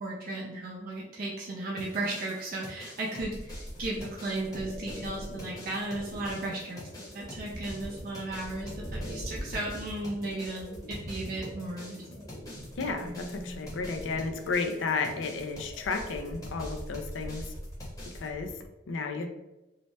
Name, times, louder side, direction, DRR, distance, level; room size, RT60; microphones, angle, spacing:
voice 1, 0.0-6.8 7.1-12.3, right 2 dB, 50° right, -3 dB, 0.4 m, -35 dB
drumandbass drums, 1.8-18.3, left 1 dB, 20° left, 0.8 m, -47 dB
sound 1, 3.2-18.6, equal, 10° right, 0.8 m, -42 dB
voice 2, 12.8-17.5 18.1-18.6 18.9-19.3, left 4 dB, 85° left, 5 dB, 0.4 m, -33 dB
2.7 x 2.1 x 3.1 m, 1.0 s
head